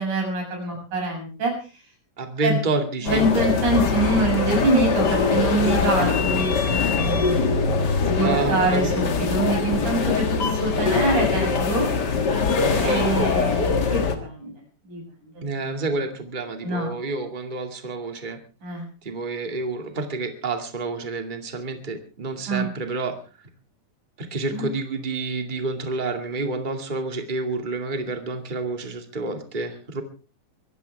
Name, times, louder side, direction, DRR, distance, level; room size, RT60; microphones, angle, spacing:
voice 1, 0.0-1.5 2.4-2.6 3.0-7.5 8.0-11.9 12.7-14.6 14.9-15.0 15.4-15.5 16.6-16.9 18.6-18.9 22.5-22.7 24.5-24.7, right 2 dB, 65° right, 2 dB, 8.7 m, -25 dB
voice 2, 2.2-3.2 8.2-9.0 12.6-13.1 15.4-18.4 19.0-23.2 24.2-30.0, right 3 dB, 15° right, 5 dB, 2.0 m, -29 dB
sound 1, 3.0-14.1, left 4 dB, 40° left, 1.7 m, -22 dB
23.5 x 15.0 x 3.5 m, 0.35 s
omnidirectional pair, 3.7 m